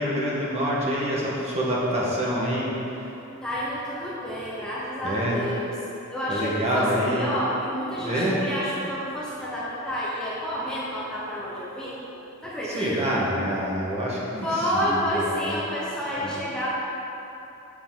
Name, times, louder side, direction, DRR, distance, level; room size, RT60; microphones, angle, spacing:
voice 1, 0.0-2.7 5.0-5.4 6.3-7.2 8.0-8.4 12.6-15.5 16.2-16.4, equal, 30° right, -6 dB, 1.3 m, -26 dB
voice 2, 3.4-5.8 6.1-12.0 12.4-13.2 14.4-16.7, equal, 5° left, -9 dB, 0.9 m, -29 dB
7.3 x 6.6 x 3.9 m, 3.0 s
head